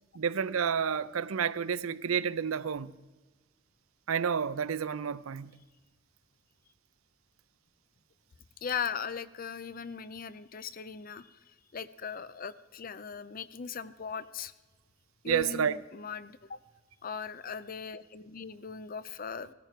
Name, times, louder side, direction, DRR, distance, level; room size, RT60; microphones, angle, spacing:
voice 1, 0.1-2.9 4.1-5.5 15.3-15.7, right 7 dB, 90° right, 0.5 m, -30 dB
voice 2, 8.6-11.4 11.7-14.5 15.2-16.6 17.0-19.5, left 6 dB, 45° left, 0.6 m, -39 dB
17.0 x 14.0 x 4.5 m
head